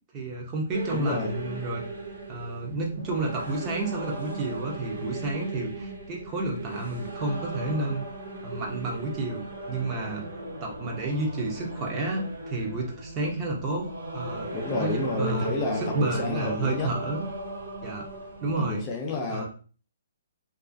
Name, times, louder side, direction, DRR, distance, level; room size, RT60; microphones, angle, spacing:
voice 1, 0.1-1.8 2.3-8.1 8.4-10.2 10.6-14.5 14.8-17.3 17.8-18.1 18.4-18.8 19.3-19.5, right 2 dB, 25° right, -1 dB, 0.6 m, -30 dB
sound 1, 0.7-18.8, right 2 dB, 80° right, 1.2 m, -37 dB
voice 2, 0.9-1.4 14.5-16.9 18.6-19.5, left 3 dB, 20° left, 1 dB, 0.5 m, -30 dB
2.4 x 2.4 x 2.4 m, 0.39 s
hypercardioid pair, 155°, 0 cm